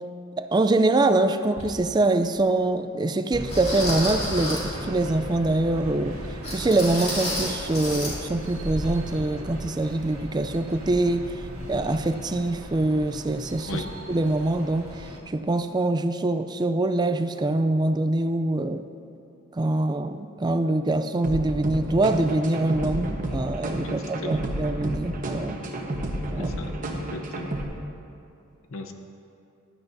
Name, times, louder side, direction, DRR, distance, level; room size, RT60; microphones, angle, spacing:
voice 1, 0.4-6.2 6.5-11.3 11.7-18.9 19.5-25.6 26.3-26.5, right 2 dB, 20° right, 10 dB, 0.3 m, -24 dB
sound 1, 1.6-1.7 2.4-2.5 3.5-4.8 6.4-8.2 8.4-8.6 9.0-9.1, left 1 dB, 30° left, 2.4 m, -31 dB
sound 2, 3.3-15.2, right 1 dB, 80° right, 1.8 m, -37 dB
sound 3, 21.2-27.6, right 1 dB, 40° right, 1.0 m, -31 dB
voice 2, 23.8-24.5 26.3-26.7 27.1-27.5 28.7-28.9, left 2 dB, 70° left, 5 dB, 0.8 m, -37 dB
15.5 x 11.0 x 2.7 m, 2.6 s
head